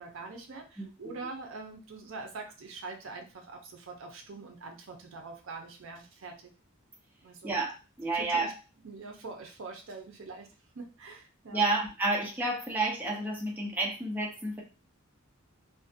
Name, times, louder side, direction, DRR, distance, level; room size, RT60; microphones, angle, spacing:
voice 1, 0.0-6.5 7.2-7.6 8.1-8.5 8.8-10.5 10.7-11.7, right 3 dB, 65° right, 3 dB, 0.5 m, -44 dB
voice 2, 0.8-1.3 7.4-8.5 11.5-14.6, right 2 dB, 10° right, -3 dB, 0.5 m, -31 dB
2.5 x 2.1 x 2.6 m, 0.33 s
head